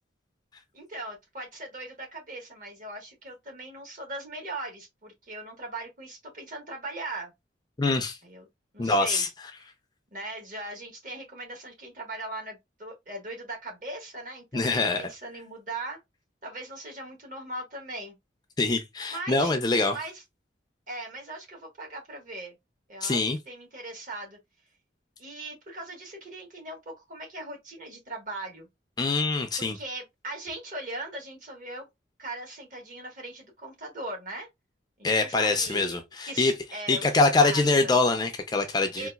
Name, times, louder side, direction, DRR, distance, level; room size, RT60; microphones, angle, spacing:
voice 1, 0.7-7.3 8.2-8.4 8.7-9.2 10.1-14.7 15.0-16.0 16.4-18.2 19.1-19.5 19.9-20.1 20.9-22.6 22.9-23.2 23.5-24.4 25.2-28.7 29.6-31.9 32.2-34.5 35.1-37.0 37.4-37.9 39.0-39.1, right 2 dB, 45° right, 1.4 m, -39 dB
voice 2, 7.8-8.2 8.8-9.3 14.5-15.1 18.6-20.0 23.0-23.4 29.0-29.8 35.0-39.1, left 3 dB, 20° left, 0.4 m, -24 dB
3.8 x 2.5 x 2.2 m
head